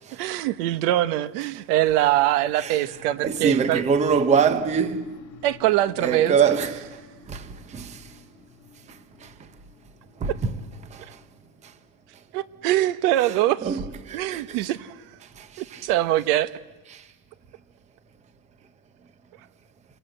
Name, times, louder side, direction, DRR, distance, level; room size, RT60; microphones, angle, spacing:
voice 1, 0.1-3.8 5.4-6.3 12.3-13.7 14.1-15.0 15.6-16.5, right 14 dB, 75° right, 1.1 m, -23 dB
sound 1, 2.4-12.3, left 6 dB, 60° left, 2.0 m, -49 dB
voice 2, 2.6-5.0 6.0-7.0 7.3-8.1 9.2-9.3 10.2-10.6 10.9-11.2 13.2-14.6 15.4-15.9 16.9-17.0, right 6 dB, 15° right, 0.8 m, -25 dB
28.0 x 22.0 x 7.9 m
cardioid pair, 175°, 47 cm